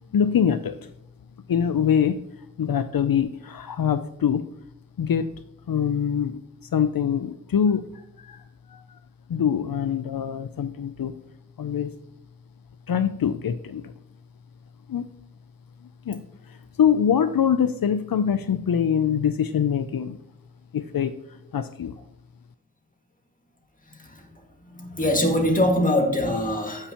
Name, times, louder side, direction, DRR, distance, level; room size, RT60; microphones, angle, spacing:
voice 1, 0.1-0.8 1.5-2.2 2.6-4.4 5.0-5.3 5.7-6.4 6.7-8.4 8.7-8.8 9.3-11.2 11.6-11.9 12.9-13.9 14.9-15.1 16.1-20.2 20.7-21.1 21.5-22.0, left 8 dB, 80° left, 11 dB, 0.5 m, -24 dB
voice 2, 23.9-24.3 24.6-26.9, left 1 dB, 25° left, 1 dB, 2.0 m, -23 dB
15.5 x 5.6 x 2.9 m, 0.79 s
wide cardioid pair, 45°, 34 cm